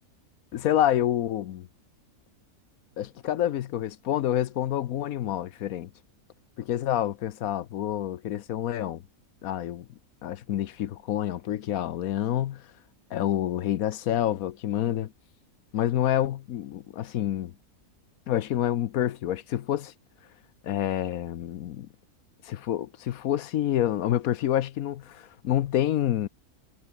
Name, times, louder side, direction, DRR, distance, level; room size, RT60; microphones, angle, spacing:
voice 1, 0.5-1.7 3.0-5.9 6.6-9.0 9.4-9.8 10.2-12.6 13.1-15.1 15.7-17.5 18.3-19.9 20.6-21.9 22.4-26.3, left 12 dB, 70° left, 1.1 m, -28 dB
omnidirectional pair, 1.6 m